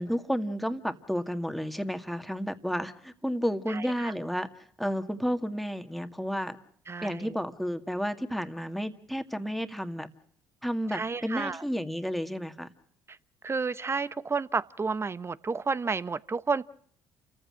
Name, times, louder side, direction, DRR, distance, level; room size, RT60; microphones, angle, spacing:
voice 1, 0.0-4.5 4.8-6.6 7.0-10.1 10.6-12.7, equal, ahead, 2.1 m, -31 dB
voice 2, 3.7-4.1 6.9-7.3 10.9-11.6 13.4-16.6, right 4 dB, 30° right, 0.9 m, -31 dB
28.5 x 15.0 x 7.7 m
supercardioid pair, 65°, 9 cm